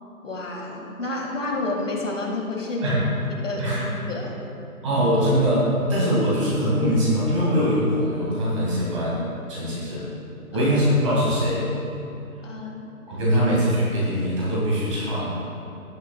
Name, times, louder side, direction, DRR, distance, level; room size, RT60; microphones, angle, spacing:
voice 1, 0.2-3.0 3.3-4.4 10.5-10.7 12.4-12.9, left 2 dB, 55° left, -1 dB, 1.7 m, -30 dB
voice 2, 3.6-3.9 4.8-10.1 10.5-11.6 13.1-15.3, equal, 20° right, -7 dB, 1.8 m, -22 dB
17.0 x 6.5 x 2.2 m, 2.8 s
hypercardioid pair, 165°, 45 cm